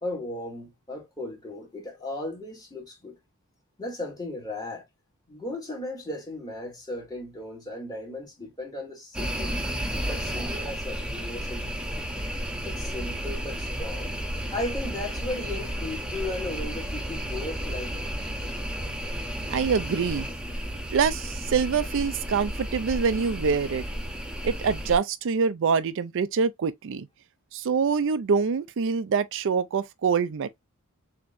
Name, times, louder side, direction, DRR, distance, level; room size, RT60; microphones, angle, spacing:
voice 1, 0.0-3.2 3.8-4.9 5.3-9.6 10.1-12.1 12.6-14.2 14.5-18.0, left 2 dB, 15° left, 2.3 m, -36 dB
sound 1, 9.1-25.0, equal, 5° right, 0.9 m, -32 dB
voice 2, 19.5-20.3 20.9-23.8 24.4-27.1 27.5-30.6, right 5 dB, 60° right, 0.4 m, -25 dB
6.8 x 2.9 x 2.6 m
head